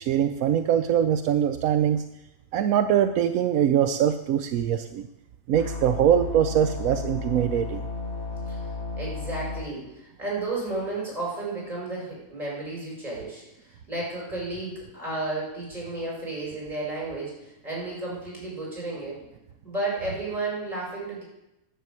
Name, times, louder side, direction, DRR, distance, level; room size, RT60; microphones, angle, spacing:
voice 1, 0.0-2.0 2.5-5.1 5.5-7.9, right 9 dB, 80° right, 7 dB, 1.0 m, -23 dB
sound 1, 5.5-9.6, left 3 dB, 50° left, 2.2 m, -33 dB
voice 2, 8.5-19.2 19.6-21.2, right 2 dB, 25° right, -4 dB, 5.4 m, -33 dB
10.0 x 6.7 x 7.7 m, 0.90 s
omnidirectional pair, 1.5 m